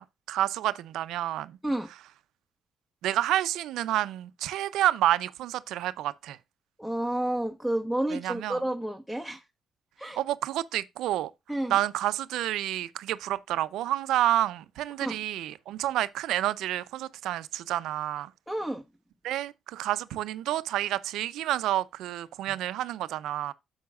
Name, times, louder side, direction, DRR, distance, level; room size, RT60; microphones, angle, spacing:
voice 1, 0.0-1.5 3.0-6.4 8.1-8.6 10.2-11.3 11.7-18.3 19.2-23.5, right 13 dB, 85° right, 0.5 m, -29 dB
voice 2, 6.8-9.4 10.0-10.2 11.5-11.7 15.0-15.2 18.5-18.8, right 1 dB, 5° left, 1.0 m, -30 dB
10.5 x 7.2 x 2.4 m
cardioid pair, 90°, 0 cm